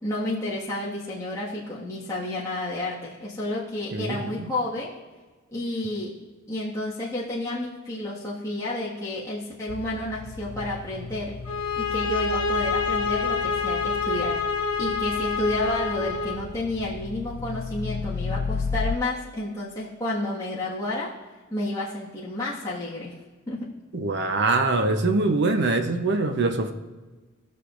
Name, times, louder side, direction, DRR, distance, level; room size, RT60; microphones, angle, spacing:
voice 1, 0.0-4.9 5.5-6.1 6.5-11.4 11.8-14.4 14.8-21.1 21.5-23.2 23.5-23.7, left 1 dB, 15° left, -9 dB, 1.7 m, -30 dB
voice 2, 3.9-4.5 23.9-26.7, right 3 dB, 55° right, 7 dB, 0.8 m, -23 dB
sound 1, 9.7-19.0, left 5 dB, 45° left, 0.4 m, -34 dB
sound 2, 11.5-16.4, left 4 dB, 75° left, 1.3 m, -27 dB
20.0 x 6.7 x 2.5 m, 1.3 s
head